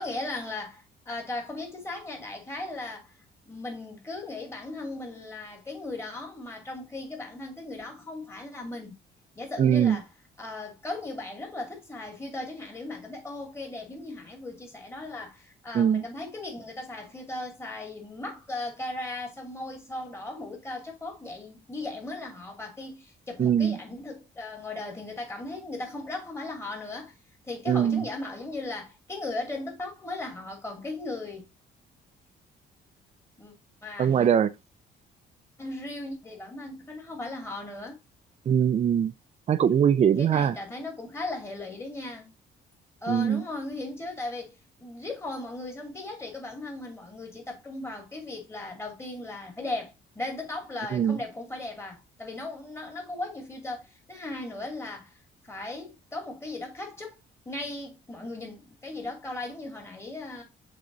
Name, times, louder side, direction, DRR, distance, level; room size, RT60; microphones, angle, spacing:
voice 1, 0.0-3.1 3.5-9.0 9.4-10.1 10.4-27.1 27.5-31.5 33.4-33.5 33.8-34.3 35.6-38.0 40.2-42.3 43.0-55.2 55.4-57.2 57.5-60.4, left 2 dB, 15° left, 2.6 m, -37 dB
voice 2, 9.6-10.0 15.7-16.0 23.4-23.8 27.7-28.0 34.0-34.5 38.5-39.1 39.5-40.5 43.1-43.4 50.9-51.2, right 8 dB, 35° right, 0.5 m, -22 dB
6.8 x 3.9 x 3.9 m
cardioid pair, 130°, 18 cm